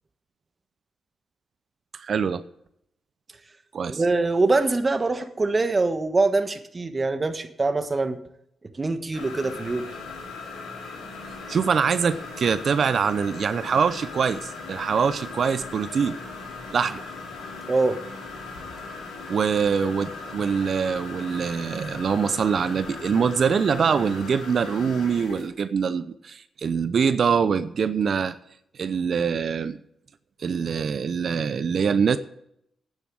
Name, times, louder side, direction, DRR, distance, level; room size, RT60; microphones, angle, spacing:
voice 1, 1.9-2.4 3.7-4.0 11.5-16.2 16.7-17.0 19.3-28.4 28.8-29.8 30.4-32.2, right 6 dB, 60° right, 13 dB, 0.6 m, -24 dB
voice 2, 3.9-8.2 8.7-9.9 17.7-18.0, right 3 dB, 35° right, 9 dB, 1.4 m, -23 dB
sound 1, 9.1-25.5, left 3 dB, 90° left, 3.7 m, -38 dB
9.8 x 7.2 x 8.6 m, 0.74 s
supercardioid pair, 55°, 0 cm